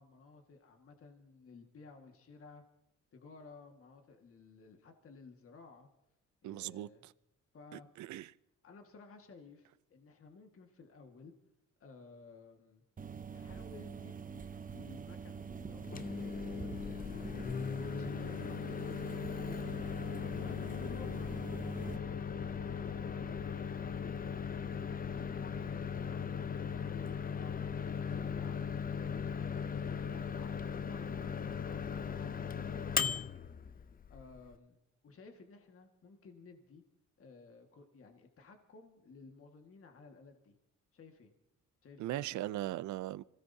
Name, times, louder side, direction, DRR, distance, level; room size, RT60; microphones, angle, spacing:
voice 1, 0.0-2.6 3.1-5.9 6.4-7.1 7.5-7.9 8.6-11.3 11.8-12.8 13.3-17.5 17.9-19.7 20.4-29.4 29.8-33.8 34.1-34.8 35.0-36.8 37.2-40.6 40.9-41.3 41.8-42.6, left 4 dB, 45° left, 1.9 m, -56 dB
voice 2, 6.4-7.1 7.7-8.3 42.0-43.2, right 15 dB, 70° right, 0.5 m, -39 dB
sound 1, 13.0-22.0, right 6 dB, 25° right, 0.9 m, -46 dB
Microwave oven, 15.7-34.5, left 6 dB, 30° left, 0.6 m, -38 dB
26.5 x 17.0 x 2.8 m
cardioid pair, 90°, 30 cm